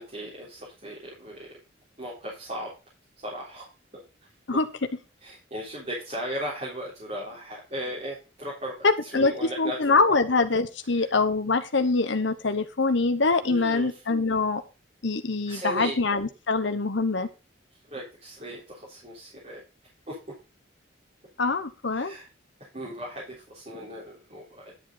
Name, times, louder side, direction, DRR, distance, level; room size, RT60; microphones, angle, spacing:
voice 1, 0.0-1.6 2.0-2.7 3.2-3.7 4.5-4.6 5.2-10.2 11.0-11.1 13.4-14.0 15.5-16.0 17.8-19.6 20.1-20.3 21.9-22.3 22.6-24.7, equal, 35° right, -5 dB, 3.8 m, -37 dB
voice 2, 8.8-14.6 15.0-17.3 21.4-22.1, left 3 dB, 70° left, 8 dB, 1.0 m, -24 dB
11.0 x 7.6 x 3.9 m, 0.31 s
head